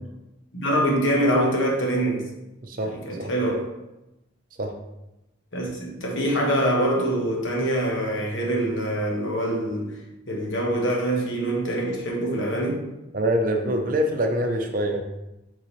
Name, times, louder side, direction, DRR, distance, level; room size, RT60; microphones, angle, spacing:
voice 1, 0.5-2.3 2.8-3.7 5.5-9.9 10.3-12.8, right 1 dB, 65° left, -1 dB, 1.2 m, -24 dB
voice 2, 2.6-3.3 4.6-4.7 13.1-15.0, right 1 dB, 40° right, 4 dB, 0.7 m, -25 dB
7.8 x 3.8 x 3.2 m, 0.95 s
head